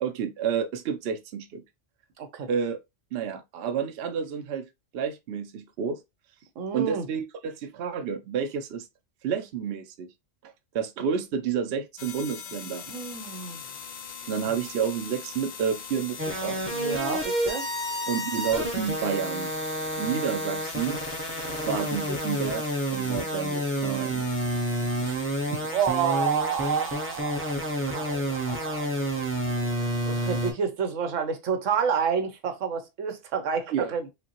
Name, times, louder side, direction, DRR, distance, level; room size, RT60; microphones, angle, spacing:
voice 1, 0.0-1.6 2.5-2.8 3.1-4.7 4.9-6.0 6.7-8.9 9.2-10.1 10.4-12.8 14.3-16.6 18.1-19.5 20.0-21.0 21.7-22.6 22.9-24.3 33.7-33.9, right 7 dB, 60° right, 0.8 m, -30 dB
voice 2, 2.2-2.5 6.6-7.0 12.9-13.6 16.7-17.7 25.0-25.1 25.6-29.2 30.1-34.1, right 7 dB, 80° right, 1.1 m, -29 dB
sound 1, 12.0-28.5, left 7 dB, 75° left, 0.4 m, -42 dB
sound 2, 16.2-30.5, right 1 dB, 10° right, 0.8 m, -29 dB
5.0 x 2.2 x 2.9 m
omnidirectional pair, 1.3 m